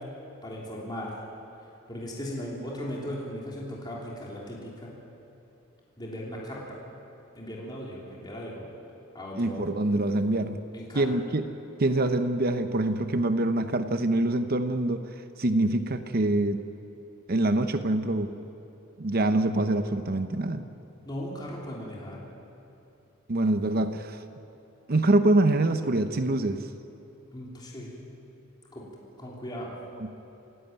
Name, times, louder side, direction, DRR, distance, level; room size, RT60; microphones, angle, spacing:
voice 1, 0.4-1.1 1.9-4.9 6.0-6.8 7.3-8.6 9.1-9.7 10.7-11.0 21.0-22.3 27.3-28.1 28.7-28.9 29.2-29.7, equal, 20° left, -4 dB, 3.3 m, -37 dB
voice 2, 9.3-10.6 10.9-11.5 11.8-15.0 15.4-16.6 17.3-18.3 19.0-20.7 23.3-24.2 24.9-26.7 30.0-30.2, right 2 dB, 45° right, 9 dB, 0.8 m, -25 dB
28.0 x 11.0 x 9.0 m, 2.9 s
head